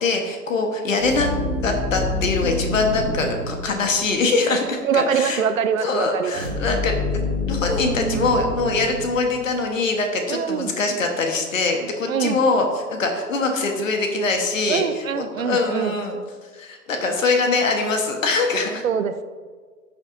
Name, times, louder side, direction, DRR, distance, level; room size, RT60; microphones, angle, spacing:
voice 1, 0.0-1.3 1.6-5.4 5.8-16.2 16.5-18.8, left 3 dB, 50° left, 3 dB, 1.4 m, -23 dB
sound 1, 1.0-4.3 6.3-9.6, left 2 dB, ahead, 2.6 m, -27 dB
voice 2, 4.8-6.4 10.3-10.7 12.1-12.4 14.7-15.9 18.8-19.2, right 7 dB, 50° right, 9 dB, 0.7 m, -23 dB
14.0 x 6.8 x 2.7 m, 1.5 s
hypercardioid pair, 150°, 50 cm